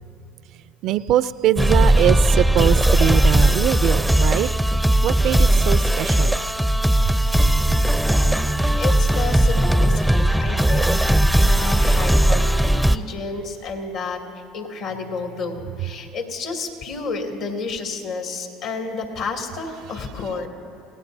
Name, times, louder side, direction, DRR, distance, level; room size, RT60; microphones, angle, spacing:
voice 1, 0.8-4.5 5.0-6.4, right 12 dB, 60° right, 0.4 m, -22 dB
sound 1, 1.6-13.0, right 1 dB, ahead, 0.5 m, -18 dB
voice 2, 8.8-14.2 14.5-20.5, left 4 dB, 65° left, 2.5 m, -31 dB
29.0 x 17.5 x 2.7 m
hypercardioid pair, 80°, 0 cm